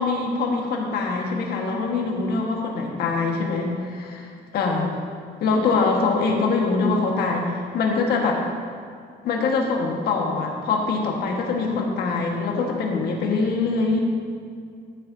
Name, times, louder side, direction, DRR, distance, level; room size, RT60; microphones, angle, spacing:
voice 1, 0.0-4.9 5.4-8.4 9.2-14.0, left 4 dB, 70° left, 1 dB, 1.6 m, -23 dB
14.0 x 7.3 x 2.8 m, 2.2 s
cardioid pair, 110°, 17 cm